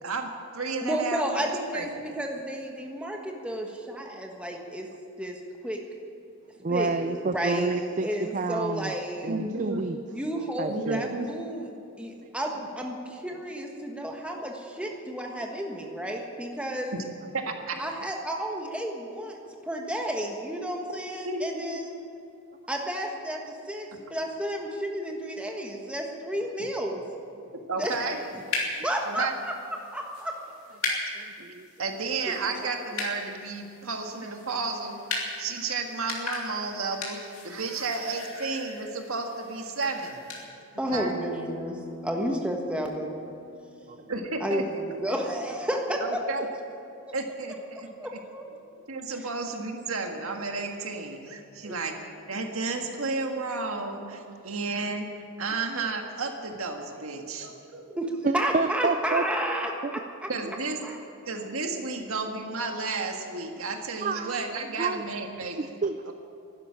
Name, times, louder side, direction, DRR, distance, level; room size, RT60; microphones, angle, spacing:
voice 1, 0.0-1.9 9.3-9.8 10.7-11.3 17.3-17.7 21.2-21.8 27.7-28.2 29.0-29.3 31.8-35.0 35.4-40.2 40.7-41.1 44.1-44.6 46.0-46.5 47.1-48.2 48.9-51.9 52.3-58.0 60.3-60.8 61.2-65.7 66.1-66.2, right 3 dB, 80° right, 3 dB, 1.7 m, -32 dB
voice 2, 0.8-4.9 5.2-5.8 6.7-9.3 10.1-11.7 12.0-17.0 17.8-22.0 22.7-27.0 27.8-28.2 28.8-30.3 32.6-32.7 40.8-43.2 44.4-46.2 48.0-48.4 58.0-60.3 60.8-61.0, equal, 5° right, 1 dB, 1.4 m, -32 dB
voice 3, 6.6-8.1 8.3-8.9 9.2-10.0 10.6-11.1 12.2-12.3 30.8-31.7 43.9-44.0 51.6-51.7 58.2-59.2 59.8-60.0 64.0-64.5 64.8-65.0 65.5-66.1, right 3 dB, 35° right, 9 dB, 0.4 m, -29 dB
sound 1, 27.9-40.4, left 3 dB, 80° left, 3.1 m, -38 dB
Acoustic guitar, 40.9-46.1, equal, 30° left, 3.4 m, -45 dB
12.0 x 11.0 x 9.7 m, 2.5 s
head